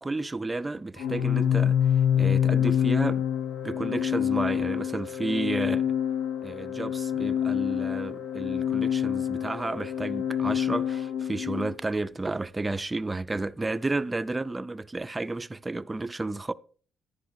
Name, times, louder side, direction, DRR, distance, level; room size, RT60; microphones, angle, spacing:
voice 1, 0.0-1.8 2.1-3.2 3.6-5.9 6.4-16.5, right 2 dB, 20° right, 0.4 m, -32 dB
Organ, 1.0-11.7, left 9 dB, 85° left, 0.6 m, -26 dB
11.0 x 9.9 x 2.6 m
cardioid pair, 90°, 0 cm